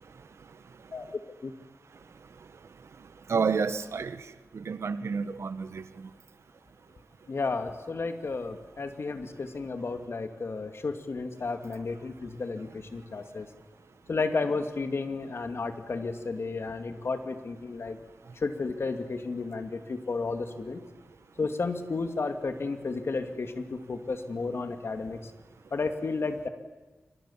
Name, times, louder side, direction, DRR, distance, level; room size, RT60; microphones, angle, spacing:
voice 1, 3.3-4.2 4.5-5.8, right 5 dB, 85° right, 1.3 m, -29 dB
voice 2, 7.3-13.5 14.1-18.0 18.4-20.8 21.4-25.3 25.7-26.5, left 3 dB, 65° left, 2.5 m, -32 dB
28.0 x 25.5 x 7.4 m
wide cardioid pair, 75°, 5 cm